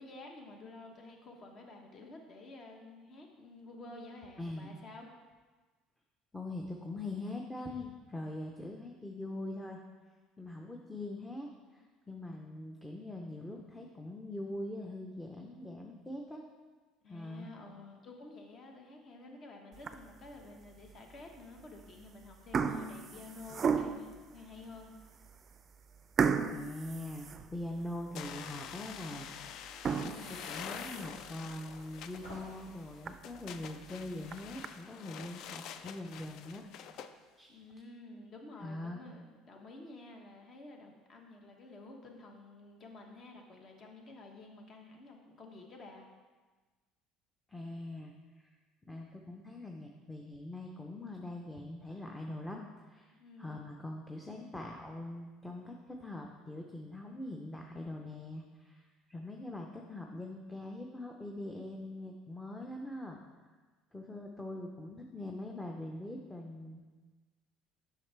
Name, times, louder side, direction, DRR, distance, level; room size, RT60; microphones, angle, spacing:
voice 1, 0.0-5.1 17.0-24.9 37.5-46.1 53.2-53.6, left 2 dB, 45° left, 2 dB, 1.2 m, -51 dB
voice 2, 4.4-4.8 6.3-9.8 10.4-16.4 17.1-17.5 26.5-36.7 37.4-37.5 38.6-39.0 47.5-48.5 48.9-63.2 63.9-66.8, left 1 dB, 10° left, 1 dB, 0.7 m, -43 dB
sound 1, 19.7-20.3 20.8-20.9 21.8-22.0 22.3-24.2 24.8-24.9 25.2-25.4 26.2-27.9 28.3-28.4 28.9-29.0 29.6-31.3 31.7-31.8 32.2-32.3 32.7-32.8 33.1-33.2 34.1-34.7, right 6 dB, 40° right, 0.4 m, -34 dB
sound 2, 28.2-37.1, left 8 dB, 60° left, 0.3 m, -47 dB
sound 3, 31.5-34.5, left 1 dB, 80° left, 2.2 m, -58 dB
7.5 x 5.8 x 3.3 m, 1.3 s
supercardioid pair, 90°, 0 cm